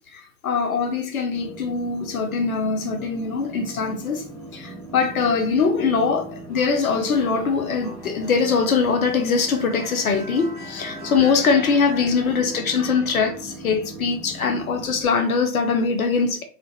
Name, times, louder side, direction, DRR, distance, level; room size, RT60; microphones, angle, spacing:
voice 1, 0.1-16.4, left 5 dB, 60° left, 0.5 m, -22 dB
sound 1, 1.3-15.1, right 1 dB, 25° right, 0.4 m, -39 dB
2.3 x 2.0 x 2.6 m
figure-of-eight pair, 130°, 49 cm